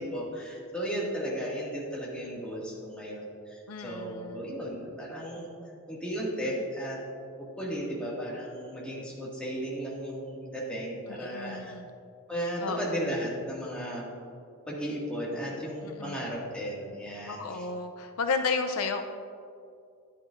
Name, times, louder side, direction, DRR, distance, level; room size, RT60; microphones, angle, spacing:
voice 1, 0.0-5.5 5.9-7.0 7.6-11.7 12.3-14.1 14.7-17.7, equal, 5° left, -6 dB, 1.9 m, -35 dB
voice 2, 3.7-4.5 11.1-11.9 12.6-12.9 15.8-16.2 17.3-19.0, left 4 dB, 75° left, 6 dB, 0.5 m, -33 dB
12.5 x 10.0 x 2.5 m, 2.4 s
head